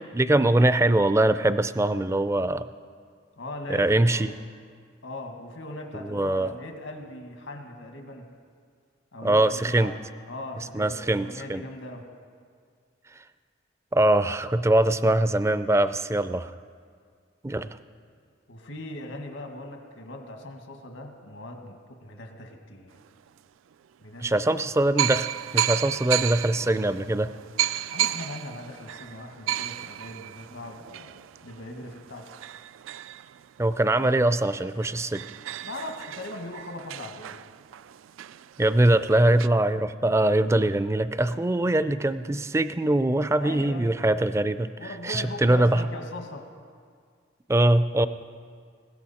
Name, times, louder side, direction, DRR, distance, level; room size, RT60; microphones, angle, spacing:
voice 1, 0.0-2.6 3.8-4.3 6.0-6.5 9.2-9.9 10.7-11.6 13.9-16.5 17.4-17.8 24.2-25.3 25.5-27.3 33.6-35.2 38.6-44.7 45.0-45.8 47.5-48.1, right 1 dB, 15° right, 13 dB, 0.4 m, -22 dB
voice 2, 3.4-4.3 5.0-8.3 9.1-9.9 10.3-12.1 18.5-23.0 24.0-24.4 27.8-32.3 35.6-37.4 43.4-44.2 44.8-46.5, left 1 dB, 85° left, 3 dB, 1.8 m, -39 dB
sound 1, 23.3-23.4 24.2-24.3 25.0-34.1 34.5-34.6 34.8-39.5, right 12 dB, 85° right, 0.3 m, -33 dB
20.0 x 16.5 x 4.3 m, 2.1 s
head